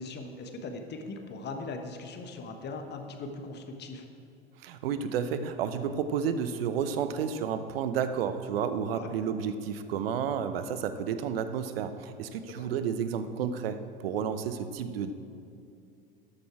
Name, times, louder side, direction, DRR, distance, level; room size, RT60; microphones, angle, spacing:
voice 1, 0.0-4.0 8.9-9.1 12.5-12.7, left 3 dB, 35° left, 4 dB, 1.3 m, -40 dB
voice 2, 4.6-15.1, right 7 dB, 70° right, 10 dB, 0.8 m, -31 dB
13.0 x 6.6 x 4.7 m, 2.6 s
hypercardioid pair, 80°, 30 cm